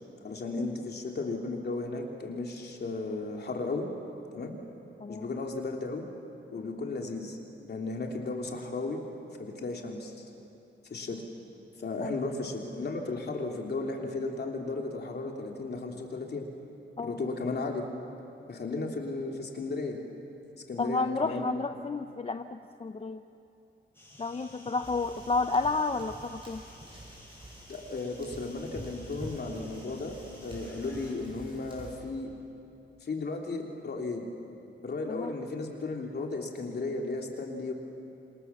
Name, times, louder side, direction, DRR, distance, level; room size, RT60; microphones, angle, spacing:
voice 1, 0.2-3.9 4.3-4.5 5.1-6.0 6.5-7.4 7.7-9.0 9.4-10.2 10.9-11.2 11.8-16.4 17.0-17.9 18.5-20.0 20.7-21.6 27.7-30.1 30.4-32.3 33.0-34.3 34.8-37.7, left 3 dB, 55° left, 1 dB, 3.2 m, -35 dB
voice 2, 5.0-5.3 12.0-12.1 17.0-17.2 20.8-23.2 24.2-26.6 35.1-35.4, left 3 dB, 30° left, 8 dB, 0.6 m, -31 dB
sound 1, 23.9-31.1, left 1 dB, 10° left, 6.6 m, -53 dB
sound 2, 24.8-32.0, right 1 dB, 25° right, 6.5 m, -47 dB
27.5 x 26.5 x 7.1 m, 2.8 s
wide cardioid pair, 160°, 20 cm